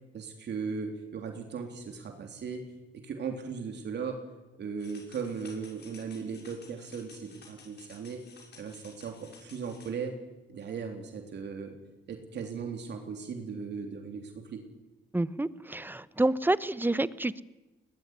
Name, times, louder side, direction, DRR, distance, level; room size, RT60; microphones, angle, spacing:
voice 1, 0.1-2.6 2.9-4.2 4.6-8.2 8.5-10.2 10.5-11.7 12.1-14.6, right 5 dB, 60° right, 4 dB, 3.5 m, -37 dB
sound 1, 4.8-9.9, left 5 dB, 60° left, 6.4 m, -54 dB
voice 2, 15.1-17.4, right 2 dB, 10° right, 17 dB, 0.9 m, -28 dB
21.0 x 19.0 x 9.6 m, 1.1 s
cardioid pair, 90°, 20 cm